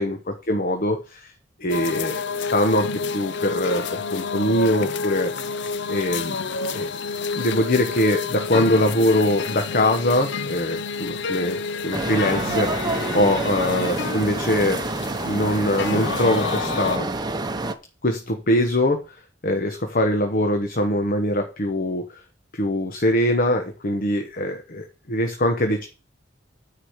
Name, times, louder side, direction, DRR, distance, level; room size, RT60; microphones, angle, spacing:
voice 1, 0.0-1.3 1.6-5.3 5.9-6.4 6.7-6.9 7.3-12.7 13.1-14.8 15.3-17.1 18.0-19.0 19.4-22.2 22.5-25.9, left 1 dB, 50° left, 5 dB, 1.1 m, -22 dB
sound 1, 1.7-17.0, left 4 dB, 65° left, 0.6 m, -29 dB
sound 2, 11.9-17.7, right 2 dB, 20° right, 0.8 m, -27 dB
9.8 x 4.9 x 8.0 m, 0.34 s
head